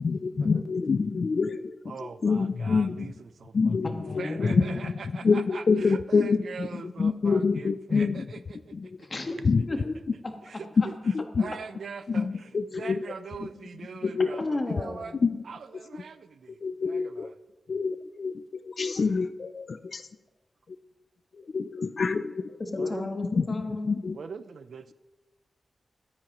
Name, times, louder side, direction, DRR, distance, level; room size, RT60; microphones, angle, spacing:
voice 1, 0.0-3.1 3.5-8.3 8.7-9.0 9.5-9.9 11.0-11.5 12.1-14.3 15.2-15.4 16.6-17.3 17.7-20.0 21.4-22.9 23.3-23.4 23.8-24.2, left 4 dB, 55° left, 11 dB, 0.4 m, -27 dB
voice 2, 1.9-3.1 3.4-3.5 4.2-4.9 5.1-8.4 11.4-12.3 12.8-14.4 14.8-15.1 15.5-16.3 22.8-23.1 24.1-24.8, right 5 dB, 70° right, 13 dB, 0.5 m, -41 dB
voice 3, 3.8-4.7 9.0-9.3 9.7-9.8 14.4-15.2 22.6-23.9, left 2 dB, 35° left, 4 dB, 1.4 m, -33 dB
22.0 x 9.7 x 3.0 m, 1.2 s
wide cardioid pair, 125°, 0 cm